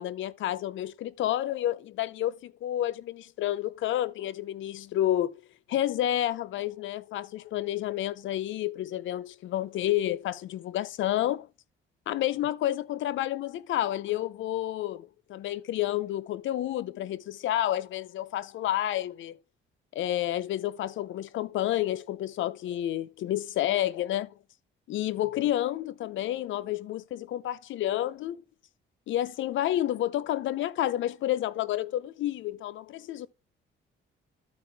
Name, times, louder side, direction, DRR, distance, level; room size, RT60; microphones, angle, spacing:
voice 1, 0.0-5.4 5.7-11.5 12.1-19.4 19.9-24.3 24.9-28.4 29.1-33.3, left 13 dB, 75° left, 0.6 m, -30 dB
12.5 x 4.7 x 3.4 m
cardioid pair, 90°, 20 cm